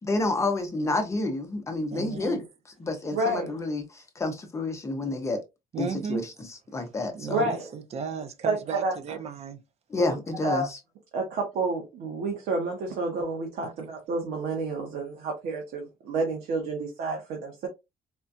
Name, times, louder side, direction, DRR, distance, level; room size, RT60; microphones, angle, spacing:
voice 1, 0.0-2.4 2.8-5.4 5.8-6.3 6.7-7.5 9.9-10.8, left 2 dB, 20° left, 0.7 m, -29 dB
voice 2, 1.9-2.4 5.7-6.3 7.1-9.6 13.6-13.7, right 6 dB, 45° right, 0.6 m, -35 dB
voice 3, 3.1-3.5 7.3-7.7 8.5-9.0 10.0-10.1 10.4-10.7 11.1-17.7, right 3 dB, 85° right, 1.0 m, -29 dB
4.3 x 2.3 x 2.5 m
cardioid pair, 155°, 15 cm